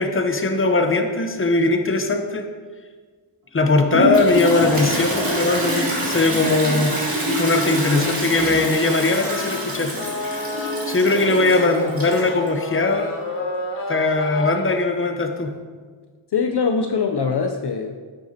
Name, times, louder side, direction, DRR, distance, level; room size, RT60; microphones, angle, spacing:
voice 1, 0.0-2.4 3.5-6.9 7.4-10.4 10.9-13.1 13.9-15.5, left 3 dB, 25° left, 5 dB, 0.8 m, -20 dB
Toilet flush, 3.9-12.5, equal, 45° right, 2.4 m, -25 dB
sound 1, 9.2-14.6, left 2 dB, 85° left, 1.2 m, -31 dB
voice 2, 16.3-18.0, left 5 dB, 55° left, 4 dB, 0.6 m, -22 dB
9.1 x 7.9 x 2.8 m, 1.5 s
wide cardioid pair, 95°, 49 cm